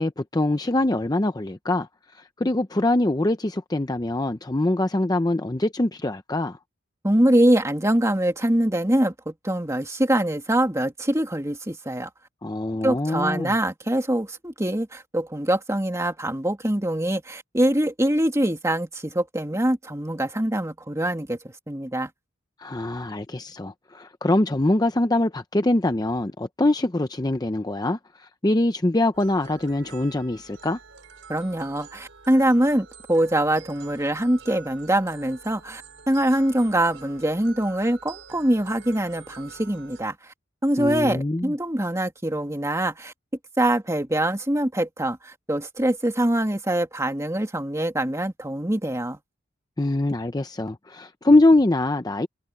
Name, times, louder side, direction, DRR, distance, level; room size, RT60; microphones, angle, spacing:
voice 1, 0.0-1.9 2.1-6.6 12.4-13.5 22.6-30.8 40.8-41.5 49.8-52.3, left 2 dB, 20° left, 0.6 m, -23 dB
voice 2, 7.0-12.1 12.8-22.1 31.3-35.8 36.1-40.3 40.6-43.1 43.6-49.2, right 1 dB, 15° right, 2.4 m, -24 dB
sound 1, 29.1-40.0, right 5 dB, 70° right, 6.1 m, -47 dB
head